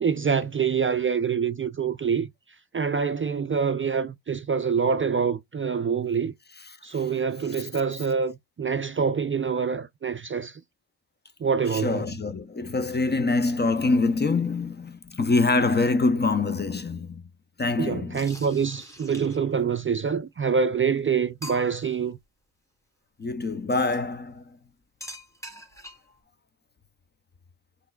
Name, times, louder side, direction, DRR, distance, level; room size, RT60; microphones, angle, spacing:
voice 1, 0.0-2.3 2.7-6.3 6.8-10.6 11.4-12.1 17.8-22.2, right 6 dB, 30° right, 0.4 m, -26 dB
voice 2, 11.7-17.2 17.6-18.2 23.2-24.4, left 3 dB, 25° left, 0.5 m, -25 dB
sound 1, 18.1-19.6 20.5-20.6 21.0-21.1 21.4-22.0 23.7-24.0 25.0-26.2, left 1 dB, 5° left, 1.3 m, -43 dB
5.8 x 3.3 x 2.2 m
cardioid pair, 80°, 44 cm